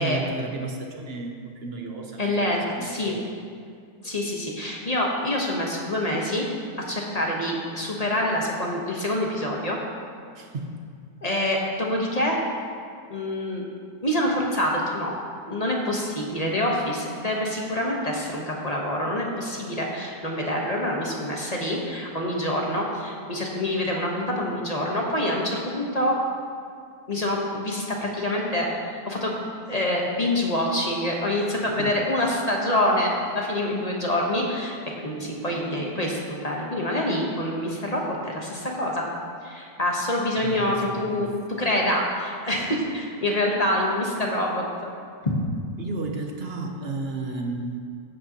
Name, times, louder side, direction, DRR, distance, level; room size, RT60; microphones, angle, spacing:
voice 1, 0.0-3.3 10.3-11.0 31.8-31.9 40.4-41.3 45.8-47.8, right 3 dB, 50° right, 2 dB, 0.8 m, -33 dB
voice 2, 2.2-3.1 4.0-6.5 6.9-9.8 11.2-12.4 13.1-13.6 14.0-15.1 15.5-26.2 27.1-28.7 29.0-29.4 29.7-39.0 39.4-41.3 41.6-44.7 45.2-45.4, left 1 dB, 25° left, -2 dB, 1.0 m, -26 dB
14.5 x 8.5 x 2.9 m, 2.3 s
omnidirectional pair, 1.9 m